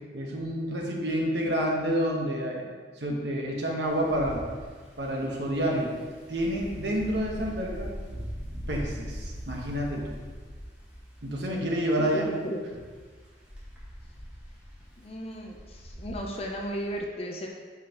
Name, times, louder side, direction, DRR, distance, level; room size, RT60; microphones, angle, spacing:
voice 1, 0.1-2.7 3.0-4.4 5.0-5.9 6.3-7.9 8.7-10.2 11.2-12.3, equal, 70° right, -1 dB, 1.2 m, -29 dB
Wind, 3.8-17.0, equal, 5° right, 1.5 m, -42 dB
voice 2, 12.0-12.8 15.0-17.5, equal, 30° left, 1 dB, 0.6 m, -35 dB
8.1 x 5.5 x 3.0 m, 1.5 s
head